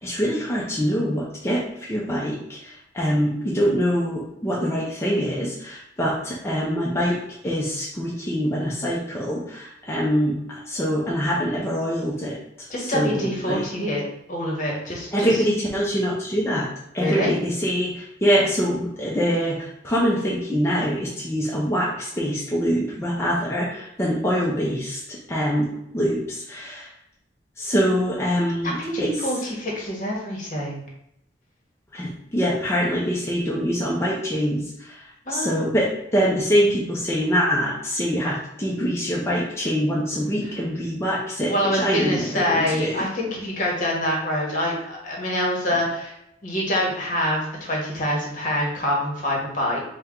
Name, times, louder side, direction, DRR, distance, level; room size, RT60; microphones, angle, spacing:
voice 1, 0.0-12.4 12.8-13.7 15.1-16.7 16.9-26.9 27.6-29.4 31.9-43.1, equal, 15° left, -5 dB, 0.6 m, -24 dB
voice 2, 12.7-14.0 14.3-15.3 17.0-17.4 28.8-30.8 35.2-35.6 41.5-46.1 46.4-49.8, left 1 dB, 45° left, -2 dB, 1.2 m, -25 dB
4.4 x 2.2 x 3.6 m, 0.80 s
head